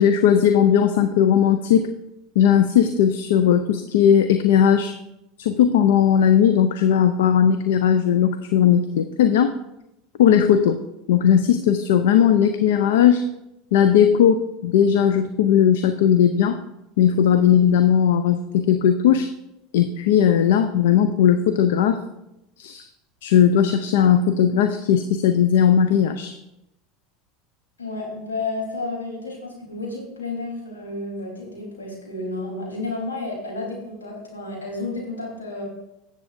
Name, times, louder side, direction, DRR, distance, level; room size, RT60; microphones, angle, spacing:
voice 1, 0.0-1.9 2.4-4.9 5.4-9.5 10.2-10.8 11.1-13.2 13.7-16.6 17.0-19.3 19.7-22.0 22.6-22.8 23.2-26.3, left 9 dB, 70° left, 9 dB, 0.5 m, -17 dB
voice 2, 27.8-35.6, left 2 dB, 90° left, -3 dB, 3.8 m, -31 dB
17.5 x 7.4 x 2.6 m, 0.90 s
hypercardioid pair, 80°, 0 cm